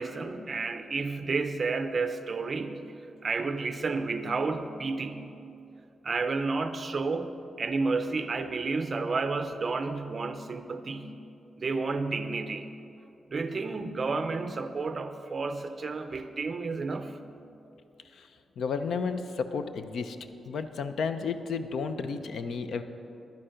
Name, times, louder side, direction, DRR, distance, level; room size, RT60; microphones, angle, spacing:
voice 1, 0.0-2.8 3.2-5.3 6.0-11.2 11.6-12.7 13.3-17.2, right 4 dB, 35° right, 9 dB, 0.5 m, -31 dB
voice 2, 18.6-20.2 20.5-22.8, left 5 dB, 75° left, 9 dB, 0.6 m, -32 dB
11.0 x 10.0 x 5.1 m, 2.7 s
wide cardioid pair, 160°, 0 cm